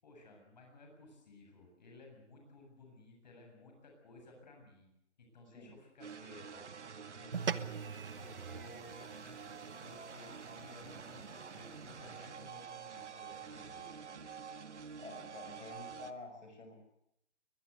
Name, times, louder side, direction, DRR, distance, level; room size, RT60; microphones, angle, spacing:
voice 1, 0.0-4.9 5.2-6.7 7.2-7.8 8.2-13.9, left 2 dB, 35° left, 2 dB, 7.5 m, -56 dB
sound 1, 6.0-16.1, right 6 dB, 70° right, 1.7 m, -48 dB
sound 2, 7.3-11.9, right 6 dB, 50° right, 1.1 m, -43 dB
voice 2, 15.0-16.9, left 3 dB, 75° left, 5 dB, 6.3 m, -49 dB
22.5 x 19.5 x 8.2 m, 0.79 s
hypercardioid pair, 175°, 36 cm